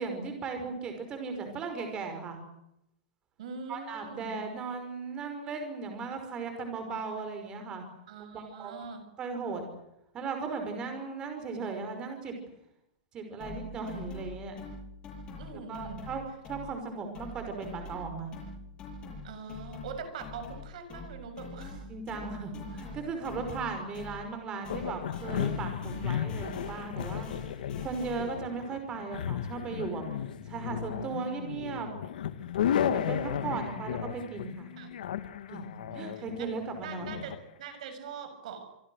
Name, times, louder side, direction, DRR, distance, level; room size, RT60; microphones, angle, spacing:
voice 1, 0.0-2.4 3.7-7.8 8.3-8.7 9.2-9.6 10.1-12.4 13.1-14.6 15.5-18.3 21.9-27.3 27.8-30.0 30.5-31.9 32.8-34.7 35.5-35.7 35.9-37.2, right 4 dB, 20° right, 6 dB, 5.5 m, -37 dB
voice 2, 3.4-4.4 8.1-9.1 15.4-16.1 16.6-16.9 19.2-21.9 33.3-33.9 34.8-35.0 35.9-38.8, right 6 dB, 55° right, 9 dB, 6.7 m, -43 dB
sound 1, 13.4-16.9 17.1-24.4 24.6-28.4, left 3 dB, 20° left, 7.6 m, -44 dB
sound 2, 24.7-37.4, left 9 dB, 75° left, 2.1 m, -34 dB
26.5 x 24.5 x 6.5 m, 0.81 s
supercardioid pair, 175°, 5 cm